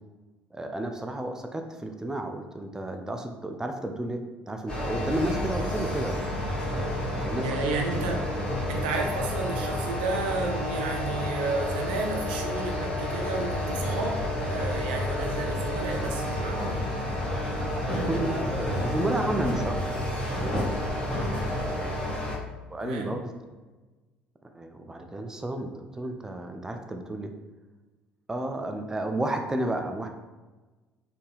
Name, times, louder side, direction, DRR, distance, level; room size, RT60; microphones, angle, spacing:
voice 1, 0.5-4.2 4.5-6.2 7.2-7.6 17.6-19.8 20.4-20.7 22.7-23.3 24.5-27.3 28.3-30.1, right 1 dB, 10° right, 4 dB, 0.4 m, -32 dB
sound 1, 4.7-22.4, left 1 dB, 15° left, 1.4 m, -30 dB
voice 2, 7.4-8.4 8.7-16.8 22.1-22.2 22.8-23.1, right 3 dB, 70° right, 2 dB, 0.5 m, -32 dB
4.2 x 2.7 x 3.4 m, 1.2 s
figure-of-eight pair, 55°, 5 cm